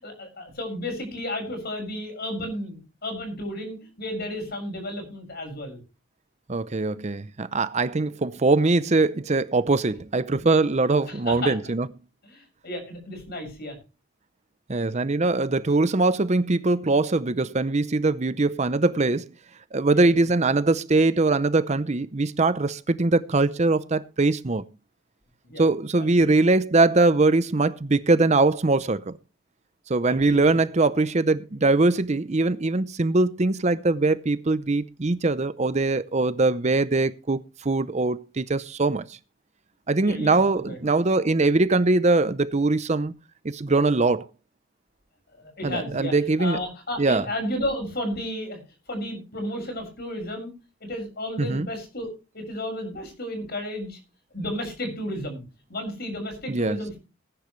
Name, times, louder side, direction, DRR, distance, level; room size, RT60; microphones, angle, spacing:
voice 1, 0.0-5.8 11.0-11.5 12.2-13.8 19.9-20.3 25.4-25.6 26.2-26.3 30.3-30.5 40.0-40.4 40.7-40.8 45.4-48.6 48.9-50.5 50.8-54.0 54.3-55.4 55.7-57.0, left 1 dB, 50° left, 7.1 m, -33 dB
voice 2, 6.5-11.9 14.7-19.3 19.7-24.7 25.6-29.2 29.9-39.2 39.9-43.1 43.4-44.3 45.6-46.6 47.0-47.2 51.4-51.7 56.5-56.8, right 3 dB, 35° right, 0.6 m, -22 dB
20.0 x 10.5 x 3.2 m
head